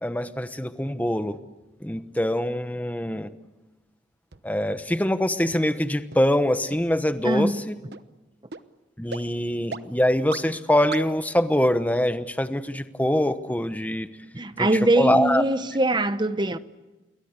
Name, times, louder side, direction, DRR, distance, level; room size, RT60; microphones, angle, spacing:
voice 1, 0.0-1.4 1.8-3.3 4.4-7.7 9.0-14.1 14.6-15.4, left 1 dB, 10° left, 1.0 m, -24 dB
sound 1, 4.3-4.4 4.9-5.0 5.5-5.6 6.1-6.2 6.7-6.8 7.3-7.4 7.9-8.0 8.5-8.6 9.1-9.2 9.7-9.8 10.3-10.4 10.9-11.0, right 4 dB, 60° right, 1.0 m, -36 dB
voice 2, 7.2-7.6 14.3-16.6, right 1 dB, 25° right, 0.9 m, -22 dB
28.5 x 22.0 x 8.2 m
head